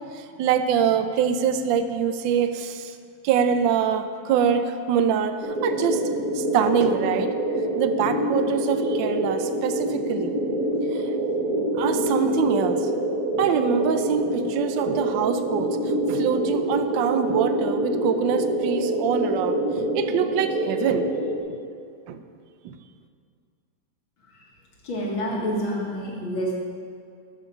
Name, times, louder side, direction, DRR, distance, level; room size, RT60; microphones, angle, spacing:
voice 1, 0.0-2.9 3.2-5.4 5.6-6.0 6.3-7.3 7.8-10.4 10.9-11.0 11.7-12.9 13.3-15.8 16.1-21.1 21.5-21.6 22.1-22.2 22.6-22.8, right 7 dB, 75° right, 9 dB, 1.3 m, -24 dB
sound 1, 5.4-21.4, right 1 dB, 50° right, 1.5 m, -26 dB
voice 2, 24.8-26.5, equal, 80° left, -3 dB, 2.8 m, -27 dB
12.0 x 7.0 x 7.0 m, 2.3 s
omnidirectional pair, 2.1 m